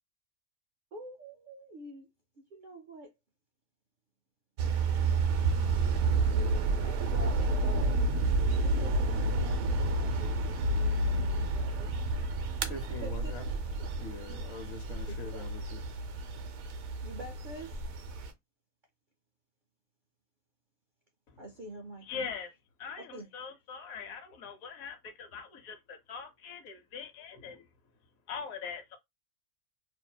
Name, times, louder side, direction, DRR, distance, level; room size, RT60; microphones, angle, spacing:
voice 1, 0.9-2.1 2.5-3.1 6.2-8.0 8.6-11.9 13.0-13.6 15.1-15.5 17.0-17.8 21.4-22.3 23.1-23.3, right 1 dB, 65° right, 0.5 m, -46 dB
sound 1, 4.6-18.3, right 2 dB, 85° right, 1.0 m, -30 dB
voice 2, 12.6-13.4 14.0-15.8, left 2 dB, 60° left, 0.8 m, -43 dB
voice 3, 22.0-22.5 22.8-27.7 28.3-29.0, left 6 dB, 80° left, 1.2 m, -42 dB
2.7 x 2.4 x 2.2 m
omnidirectional pair, 1.4 m